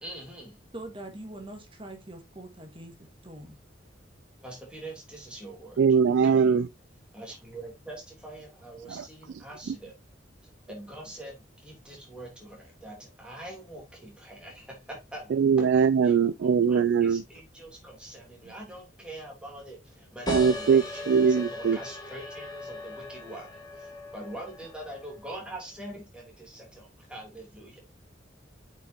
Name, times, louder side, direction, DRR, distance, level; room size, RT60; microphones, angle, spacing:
voice 1, 0.0-0.6 4.4-5.8 6.2-6.5 7.1-10.0 10.7-15.7 16.0-27.8, right 1 dB, 5° right, 2.9 m, -44 dB
voice 2, 0.7-2.9 3.2-3.6 5.7-5.9, right 1 dB, 30° right, 1.6 m, -43 dB
voice 3, 5.8-6.7 8.9-9.0 9.7-9.8 15.3-17.2 20.3-21.8, right 6 dB, 75° right, 0.3 m, -22 dB
sound 1, 20.3-25.5, left 2 dB, 20° left, 2.5 m, -38 dB
8.3 x 5.5 x 2.8 m
head